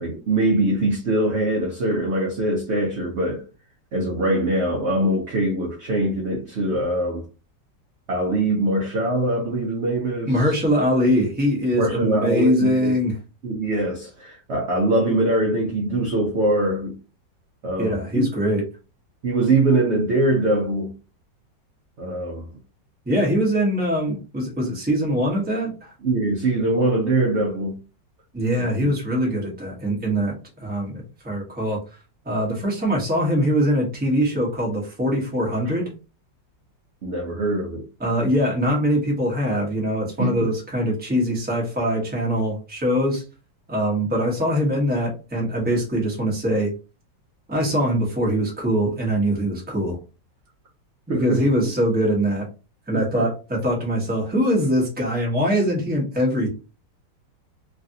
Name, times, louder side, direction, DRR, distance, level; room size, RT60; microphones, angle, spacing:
voice 1, 0.0-3.4 3.9-7.2 8.1-10.4 11.8-12.9 13.4-17.0 17.6-18.2 19.2-20.9 22.0-22.5 26.0-27.8 28.8-28.9 37.0-37.8 40.2-40.5 51.1-51.7 52.9-53.3, right 1 dB, 70° right, 0.6 m, -23 dB
voice 2, 10.2-13.2 17.8-18.6 23.1-25.9 28.3-31.8 32.3-35.9 38.0-43.2 43.7-46.7 47.5-50.0 51.1-52.5 52.9-56.5, equal, 10° right, 0.6 m, -22 dB
3.2 x 2.5 x 2.6 m
omnidirectional pair, 2.0 m